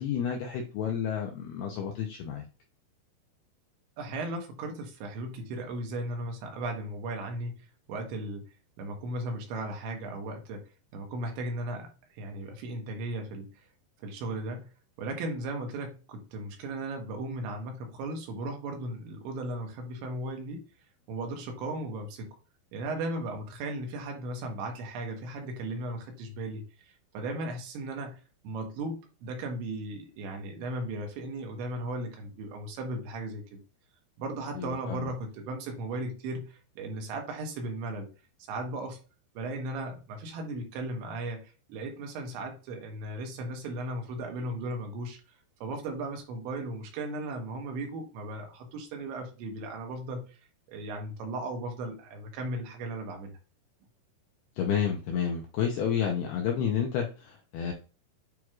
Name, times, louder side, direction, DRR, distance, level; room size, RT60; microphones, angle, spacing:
voice 1, 0.0-2.4 34.5-35.1 54.6-57.7, left 8 dB, 80° left, 1 dB, 2.3 m, -30 dB
voice 2, 4.0-8.5 8.8-10.7 10.9-13.5 14.0-14.7 15.0-20.6 21.1-22.4 22.7-33.6 34.2-38.1 38.5-39.0 39.4-45.2 45.6-50.4 50.7-53.4, right 2 dB, 75° right, 3 dB, 3.4 m, -36 dB
9.1 x 4.7 x 2.4 m, 0.34 s
omnidirectional pair, 5.6 m